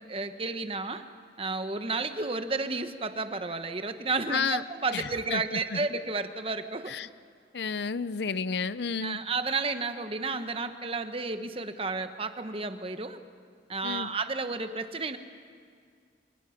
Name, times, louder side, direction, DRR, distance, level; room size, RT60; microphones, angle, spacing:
voice 1, 0.1-1.0 1.4-6.9 9.0-13.2 13.7-15.2, right 3 dB, 30° right, 8 dB, 1.1 m, -32 dB
voice 2, 4.3-4.6 4.9-5.8 6.9-7.1 7.5-9.2 13.8-14.1, left 5 dB, 70° left, 15 dB, 0.6 m, -31 dB
29.0 x 25.0 x 5.8 m, 2.2 s
head